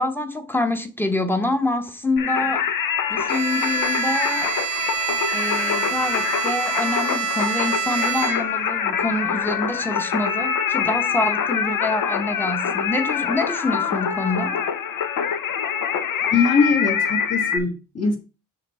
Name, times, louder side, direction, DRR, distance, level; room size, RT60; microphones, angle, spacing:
voice 1, 0.0-2.7 3.1-4.5 5.3-14.6, left 2 dB, 5° left, 0.9 m, -26 dB
Singing, 2.2-17.6, left 7 dB, 85° left, 0.8 m, -25 dB
Bowed string instrument, 3.3-8.7, right 7 dB, 60° right, 0.8 m, -27 dB
voice 2, 16.3-18.2, left 4 dB, 50° left, 1.9 m, -21 dB
5.9 x 5.9 x 4.3 m
wide cardioid pair, 120°, 32 cm